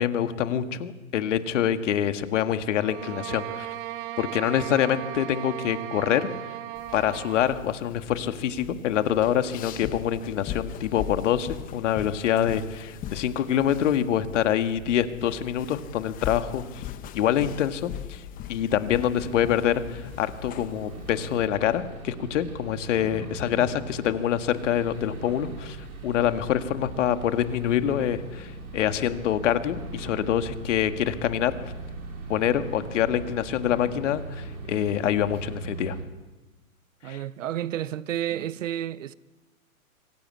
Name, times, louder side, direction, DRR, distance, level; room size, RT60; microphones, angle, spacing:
voice 1, 0.0-3.7 4.2-6.3 6.9-16.6 17.1-18.2 18.5-25.8 26.0-31.5 32.3-36.0 37.1-37.2, left 10 dB, 55° left, 1.8 m, -25 dB
sound 1, 2.8-7.6, right 14 dB, 40° right, 1.6 m, -36 dB
sound 2, 6.7-21.5, left 10 dB, 20° left, 0.9 m, -40 dB
sound 3, 18.9-36.0, right 3 dB, 85° right, 6.2 m, -40 dB
voice 2, 37.0-39.1, right 11 dB, 60° right, 0.9 m, -31 dB
25.0 x 15.5 x 8.5 m
hypercardioid pair, 130°, 42 cm